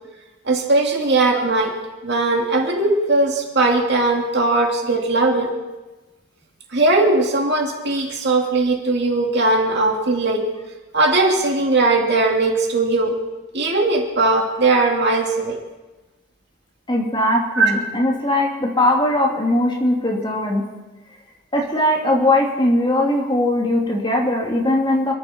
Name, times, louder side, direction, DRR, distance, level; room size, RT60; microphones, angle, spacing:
voice 1, 0.4-1.7 2.0-5.5 6.7-10.4 10.9-13.2 13.5-15.6 17.5-17.7, right 2 dB, 50° right, 1 dB, 2.5 m, -19 dB
voice 2, 16.9-20.6 21.5-25.1, left 1 dB, 20° left, -1 dB, 2.6 m, -19 dB
28.0 x 11.0 x 4.4 m, 1.1 s
head